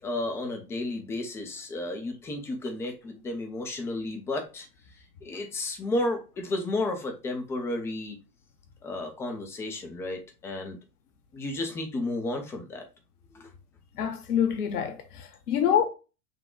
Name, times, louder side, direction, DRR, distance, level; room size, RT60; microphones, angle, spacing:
voice 1, 0.0-4.7 5.2-8.2 8.8-10.8 11.3-12.9 13.3-13.5, left 2 dB, 5° left, 0.3 m, -32 dB
voice 2, 14.0-15.9, left 9 dB, 70° left, 0.9 m, -26 dB
6.1 x 2.2 x 3.6 m
hypercardioid pair, 100°, 48 cm